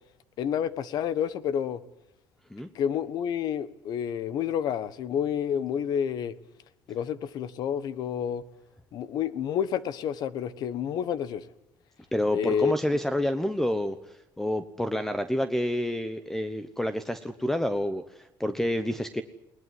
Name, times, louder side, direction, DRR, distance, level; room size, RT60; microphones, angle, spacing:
voice 1, 0.4-1.8 2.7-6.4 6.9-8.4 8.9-11.5 12.3-12.7, left 8 dB, 60° left, 1.3 m, -29 dB
voice 2, 12.1-19.2, left 1 dB, 5° left, 1.0 m, -29 dB
21.0 x 19.5 x 9.4 m
cardioid pair, 150°, 8 cm